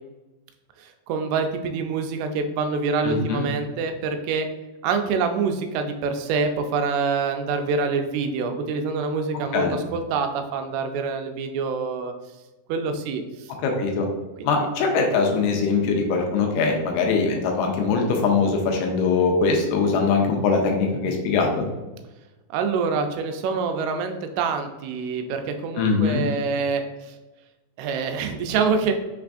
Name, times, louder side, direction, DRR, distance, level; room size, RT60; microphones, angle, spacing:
voice 1, 1.1-4.5 4.8-12.1 12.7-13.5 14.4-14.7 22.5-27.1 27.8-28.9, right 5 dB, 90° right, 6 dB, 2.6 m, -26 dB
voice 2, 3.0-3.5 9.5-9.8 13.6-14.1 14.4-21.7 25.8-26.2, left 4 dB, 85° left, 1 dB, 2.6 m, -22 dB
6.1 x 3.4 x 2.5 m, 1.1 s
omnidirectional pair, 4.6 m